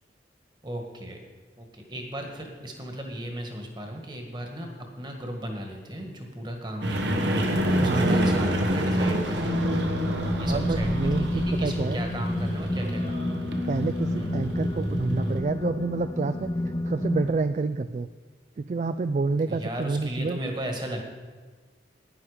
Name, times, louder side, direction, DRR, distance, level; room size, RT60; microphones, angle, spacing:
voice 1, 0.6-1.2 1.6-4.7 5.0-9.6 10.3-10.9 11.1-13.4 14.2-14.3 19.5-21.2, right 1 dB, 25° right, 3 dB, 1.6 m, -36 dB
sound 1, 6.8-15.4, equal, 80° right, 1.4 m, -27 dB
voice 2, 7.7-8.1 10.5-12.0 13.7-16.5 16.8-18.1 18.6-20.4, right 3 dB, 40° right, 11 dB, 0.3 m, -28 dB
sound 2, 9.4-17.3, left 1 dB, 20° left, 0.7 m, -30 dB
11.5 x 10.0 x 5.0 m, 1.4 s
head